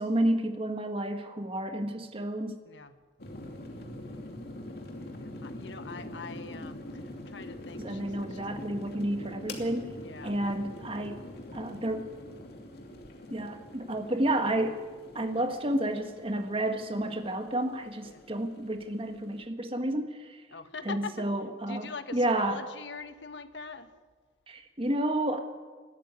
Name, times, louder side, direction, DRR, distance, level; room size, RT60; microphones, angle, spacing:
voice 1, 0.0-2.6 7.8-9.9 10.2-11.2 11.5-12.1 13.3-14.8 15.1-20.4 20.8-22.6 24.5-25.4, right 1 dB, 30° right, 6 dB, 1.7 m, -30 dB
voice 2, 2.7-3.0 5.4-8.5 10.0-10.4 18.1-18.2 20.5-21.3 21.7-23.9, left 4 dB, 80° left, 10 dB, 1.4 m, -42 dB
sound 1, 3.2-19.4, left 1 dB, 60° left, 2.7 m, -44 dB
20.0 x 13.5 x 9.6 m, 1.4 s
head